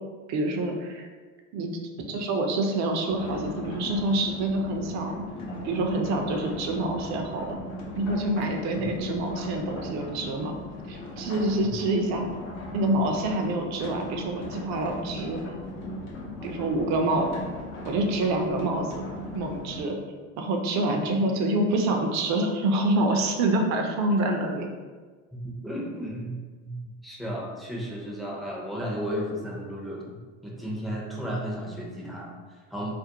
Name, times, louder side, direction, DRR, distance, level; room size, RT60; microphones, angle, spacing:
voice 1, 0.3-1.1 1.5-1.8 2.1-5.2 5.6-7.6 8.0-10.6 10.9-12.3 12.7-15.4 16.4-17.3 17.8-19.1 19.3-20.0 20.4-24.7, right 2 dB, 45° right, 3 dB, 0.5 m, -26 dB
sound 1, 3.1-19.8, left 1 dB, 75° left, 0.8 m, -38 dB
voice 2, 25.3-33.0, equal, ahead, -4 dB, 0.5 m, -34 dB
2.5 x 2.0 x 2.8 m, 1.4 s
hypercardioid pair, 90°, 38 cm